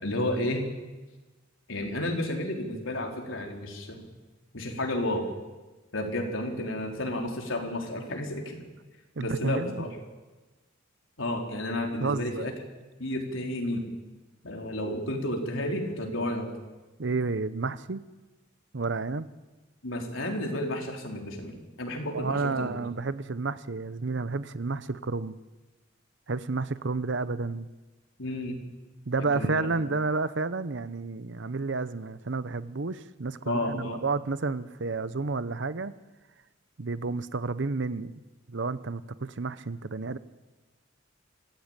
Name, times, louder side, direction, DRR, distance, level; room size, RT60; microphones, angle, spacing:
voice 1, 0.0-0.6 1.7-4.1 4.5-5.2 5.9-8.6 9.2-9.9 11.2-12.5 13.0-13.8 14.4-16.5 19.8-22.8 28.2-28.6 29.3-29.7 33.5-34.0, left 1 dB, 90° left, 2 dB, 4.0 m, -31 dB
voice 2, 9.2-9.8 12.0-12.4 17.0-18.0 18.7-19.3 22.1-25.4 26.3-27.7 29.1-35.9 36.8-38.1 38.5-40.2, right 3 dB, 65° right, 15 dB, 0.8 m, -31 dB
25.0 x 16.0 x 8.9 m, 1.2 s
head